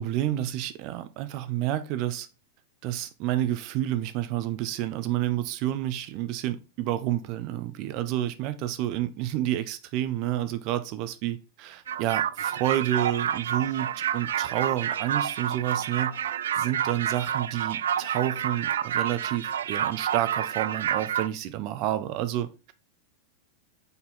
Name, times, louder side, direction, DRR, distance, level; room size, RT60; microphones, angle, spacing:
voice 1, 0.0-2.3 2.8-16.2 16.6-22.7, right 13 dB, 50° right, 0.8 m, -29 dB
sound 1, 11.9-21.3, right 9 dB, 75° right, 0.4 m, -29 dB
7.0 x 4.1 x 3.8 m
hypercardioid pair, 105°, 0 cm